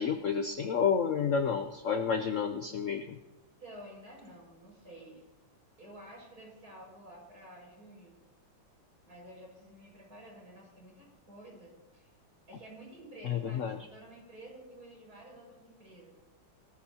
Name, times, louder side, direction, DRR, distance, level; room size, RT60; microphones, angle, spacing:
voice 1, 0.0-3.2 13.2-13.8, left 6 dB, 75° left, 6 dB, 0.7 m, -30 dB
voice 2, 3.6-5.2 5.8-8.2 9.1-12.1 12.5-16.1, right 1 dB, 45° right, -3 dB, 6.3 m, -51 dB
21.5 x 14.0 x 2.9 m, 1.1 s
omnidirectional pair, 2.3 m